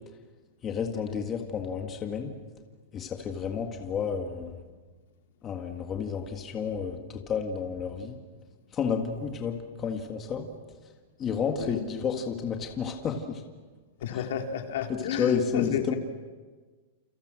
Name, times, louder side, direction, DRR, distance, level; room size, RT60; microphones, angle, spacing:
voice 1, 0.6-2.4 2.9-4.6 5.4-8.2 8.7-10.5 11.2-13.4 14.1-14.2 14.9-15.9, left 6 dB, 20° left, 3 dB, 1.9 m, -31 dB
voice 2, 14.0-16.0, left 8 dB, 70° left, 3 dB, 3.4 m, -32 dB
30.0 x 29.0 x 6.4 m, 1.4 s
supercardioid pair, 170°, 0 cm